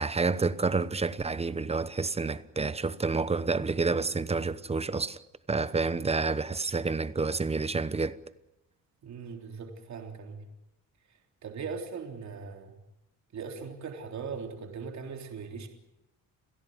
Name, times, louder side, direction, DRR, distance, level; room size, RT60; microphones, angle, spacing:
voice 1, 0.0-5.2 5.5-8.2, right 4 dB, 20° right, 1.0 m, -29 dB
voice 2, 9.0-10.4 11.1-12.8 13.3-15.7, right 5 dB, 50° right, 3.6 m, -40 dB
29.0 x 16.5 x 9.5 m
cardioid pair, 135°, 35 cm